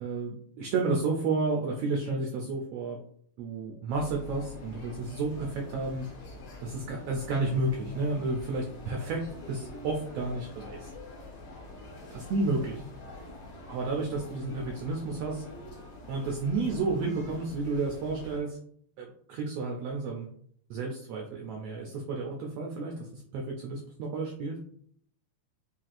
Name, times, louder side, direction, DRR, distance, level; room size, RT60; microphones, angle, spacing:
voice 1, 0.0-3.0 3.4-6.1 6.6-10.9 12.1-12.8 13.7-15.5 16.1-18.6 19.0-20.3 20.7-24.6, right 3 dB, 85° right, 0 dB, 1.4 m, -31 dB
sound 1, 3.9-18.4, left 3 dB, 70° left, 2.3 m, -45 dB
5.6 x 2.4 x 2.5 m, 0.63 s
omnidirectional pair, 3.4 m